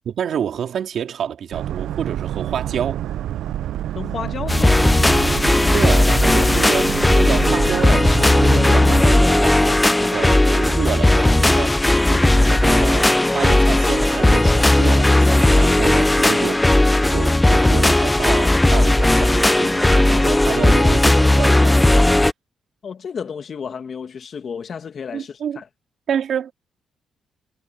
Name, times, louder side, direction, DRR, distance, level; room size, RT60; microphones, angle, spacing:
voice 1, 0.1-3.0 5.7-16.6 17.1-22.1 25.1-25.6 26.1-26.5, right 8 dB, 60° right, 2.7 m, -28 dB
Boat Water vehicle, 1.5-9.0, right 12 dB, 80° right, 0.5 m, -27 dB
voice 2, 3.9-5.0 22.8-25.7, left 6 dB, 50° left, 2.3 m, -32 dB
sound 1, 4.5-22.3, left 1 dB, 10° left, 0.5 m, -16 dB
cardioid pair, 90°, 0 cm